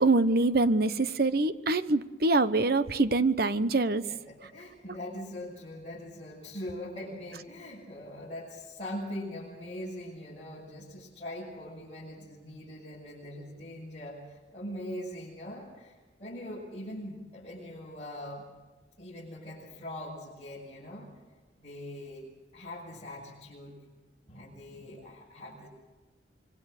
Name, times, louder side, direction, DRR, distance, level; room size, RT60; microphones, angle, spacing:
voice 1, 0.0-4.0, right 2 dB, 55° right, 13 dB, 0.9 m, -25 dB
voice 2, 4.1-18.5 19.0-21.1 21.6-22.3 22.5-23.8 24.3-25.7, left 1 dB, 35° left, -8 dB, 7.3 m, -42 dB
26.0 x 23.5 x 6.7 m, 1.2 s
head